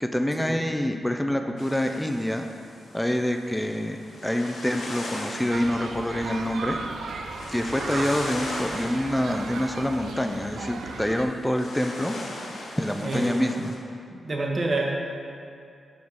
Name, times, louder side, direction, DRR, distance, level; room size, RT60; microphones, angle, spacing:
voice 1, 0.0-2.5 2.9-6.8 7.5-12.2 12.5-13.7, left 1 dB, 10° left, 5 dB, 0.4 m, -26 dB
sound 1, 1.6-13.8, left 2 dB, 80° left, 1.0 m, -40 dB
sound 2, 5.5-11.2, right 3 dB, 80° right, 0.4 m, -36 dB
voice 2, 13.0-13.6 14.1-15.0, right 2 dB, 45° right, 0 dB, 1.0 m, -28 dB
5.1 x 4.6 x 5.3 m, 2.3 s
cardioid pair, 70°, 0 cm